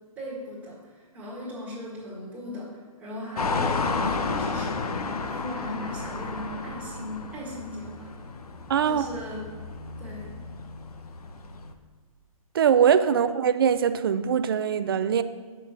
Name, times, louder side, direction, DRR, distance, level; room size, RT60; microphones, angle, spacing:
voice 1, 0.2-8.1 8.9-9.4 10.0-10.3, left 1 dB, 10° right, -8 dB, 1.9 m, -38 dB
sound 1, 3.4-11.7, left 4 dB, 80° left, 0.9 m, -32 dB
voice 2, 8.7-9.1 12.5-15.2, right 8 dB, 40° right, 11 dB, 0.5 m, -22 dB
7.3 x 6.8 x 6.1 m, 1.4 s
hypercardioid pair, 160°, 19 cm